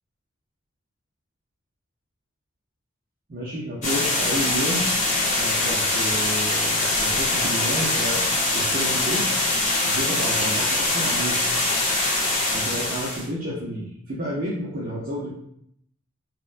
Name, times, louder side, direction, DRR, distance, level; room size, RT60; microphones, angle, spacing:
voice 1, 3.3-4.9 5.4-8.3 8.5-9.3 9.8-11.5 12.5-15.3, equal, 45° right, -6 dB, 0.5 m, -30 dB
sound 1, 3.8-13.3, left 2 dB, 35° left, 0.7 m, -23 dB
3.4 x 2.1 x 2.4 m, 0.71 s
head